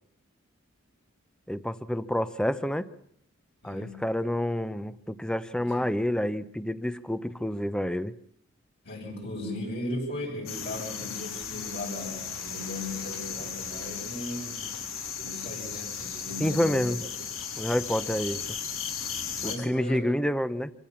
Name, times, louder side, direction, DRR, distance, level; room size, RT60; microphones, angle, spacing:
voice 1, 1.5-2.9 3.6-8.1 16.4-17.0 17.6-18.6 19.4-20.7, equal, 5° left, 14 dB, 0.8 m, -28 dB
voice 2, 3.6-4.0 5.5-5.9 8.8-14.7 15.2-16.9 19.4-20.1, left 1 dB, 55° left, -4 dB, 6.9 m, -37 dB
sound 1, 10.5-19.6, left 7 dB, 75° left, 3.8 m, -36 dB
26.5 x 16.0 x 7.1 m, 0.70 s
head